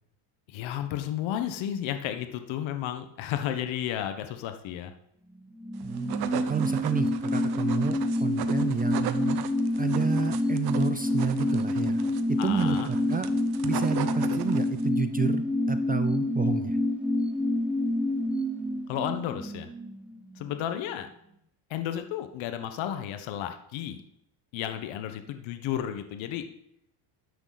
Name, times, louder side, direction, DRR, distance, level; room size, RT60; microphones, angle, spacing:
voice 1, 0.5-4.9 12.4-12.9 18.9-19.7 20.4-21.1 21.7-24.0 24.5-26.5, left 10 dB, 65° left, 8 dB, 1.3 m, -32 dB
sound 1, 5.4-20.6 20.9-21.0, left 1 dB, ahead, 1.1 m, -28 dB
voice 2, 5.8-6.2 6.5-9.4 9.8-12.0 12.3-13.3 13.6-16.8, right 6 dB, 20° right, 10 dB, 0.3 m, -30 dB
sound 2, 5.8-14.9, right 11 dB, 50° right, 1.0 m, -37 dB
13.0 x 10.0 x 4.1 m, 0.75 s
cardioid pair, 140°, 50 cm